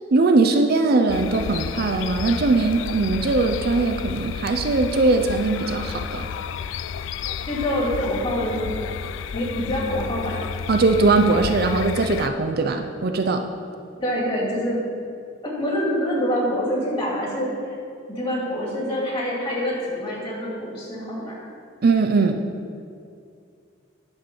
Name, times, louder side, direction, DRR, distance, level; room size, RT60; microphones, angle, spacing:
voice 1, 0.1-6.3 10.7-13.4 21.8-22.4, right 3 dB, 50° right, 6 dB, 0.5 m, -20 dB
sound 1, 1.1-12.3, left 7 dB, 75° left, 0.3 m, -31 dB
voice 2, 7.5-9.0 9.3-10.4 14.0-14.8 15.4-17.7 18.1-21.3, equal, 30° left, -4 dB, 2.6 m, -26 dB
10.5 x 4.6 x 7.0 m, 2.4 s
head